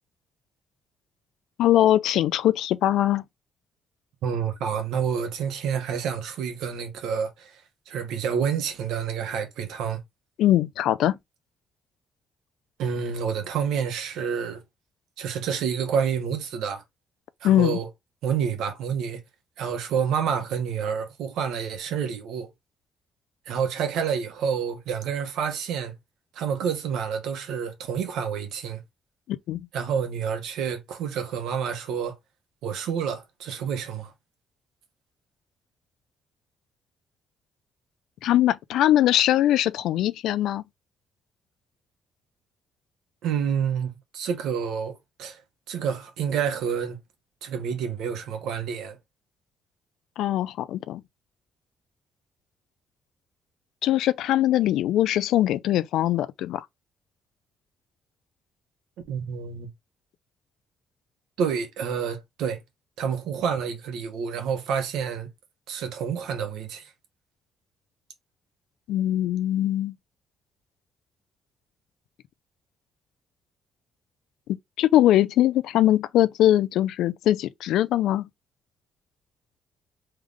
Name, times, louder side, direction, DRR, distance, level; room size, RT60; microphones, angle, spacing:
voice 1, 1.6-3.2 10.4-11.2 17.4-17.8 29.3-29.7 38.2-40.6 50.2-51.0 53.8-56.7 68.9-69.9 74.5-78.3, left 13 dB, 85° left, 0.4 m, -22 dB
voice 2, 4.2-7.6 7.9-10.0 12.8-14.6 15.2-16.8 17.4-17.9 18.2-19.2 19.6-22.5 23.5-25.9 26.3-28.8 29.7-32.1 32.6-34.1 43.2-45.4 45.7-47.0 47.4-49.0 59.1-59.7 61.4-62.6 63.0-65.3 65.7-66.9, right 7 dB, 85° right, 1.1 m, -28 dB
3.7 x 3.3 x 3.4 m
cardioid pair, 90°, 0 cm